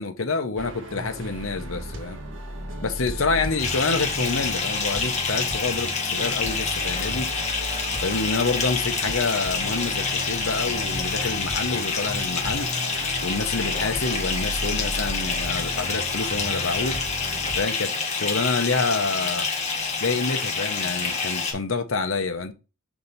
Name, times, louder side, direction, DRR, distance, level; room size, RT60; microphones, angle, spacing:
voice 1, 0.0-2.2 2.8-7.3 8.0-12.7 13.2-17.0 17.5-19.5 20.0-22.5, left 4 dB, 80° left, 1.0 m, -27 dB
sound 1, 0.6-17.6, equal, 65° right, 1.4 m, -35 dB
Bathtub (filling or washing) / Fill (with liquid), 3.6-21.5, left 4 dB, 35° left, 1.6 m, -27 dB
5.0 x 4.0 x 5.7 m
head